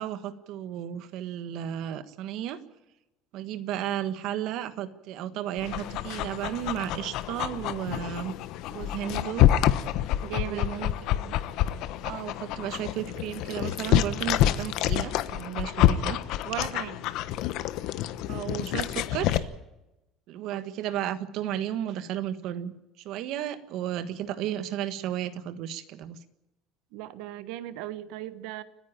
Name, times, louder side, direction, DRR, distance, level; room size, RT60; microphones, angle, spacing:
voice 1, 0.0-2.6 3.3-8.3 8.7-9.5 10.4-11.3 12.0-16.2 18.3-19.5 20.3-22.7 23.0-26.2, right 11 dB, 55° right, 1.5 m, -33 dB
Dog, 5.6-19.4, left 12 dB, 55° left, 1.1 m, -27 dB
voice 2, 10.2-10.7 16.4-17.0 20.5-20.6 26.9-28.6, right 14 dB, 70° right, 1.3 m, -37 dB
30.0 x 10.0 x 8.9 m
cardioid pair, 175°, 0 cm